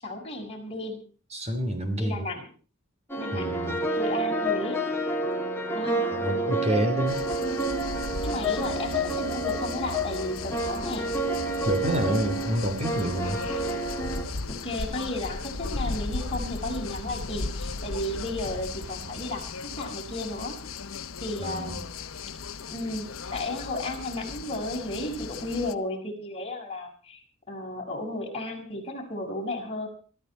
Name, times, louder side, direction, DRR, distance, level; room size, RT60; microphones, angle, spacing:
voice 1, 0.0-1.0 1.9-2.5 3.2-3.6 4.0-4.9 5.7-6.1 8.2-11.1 14.5-20.6 21.2-21.9 22.7-29.9, left 1 dB, 30° left, -1 dB, 6.2 m, -34 dB
voice 2, 1.3-2.2 3.3-3.8 6.1-7.2 11.7-13.4 21.4-21.8, equal, 30° right, 7 dB, 3.1 m, -28 dB
sound 1, 3.1-14.2, right 1 dB, 10° left, 2.7 m, -29 dB
sound 2, 7.1-25.7, left 4 dB, 85° left, 1.0 m, -37 dB
sound 3, 8.6-19.3, right 3 dB, 80° right, 1.7 m, -46 dB
23.5 x 13.5 x 4.5 m, 0.39 s
head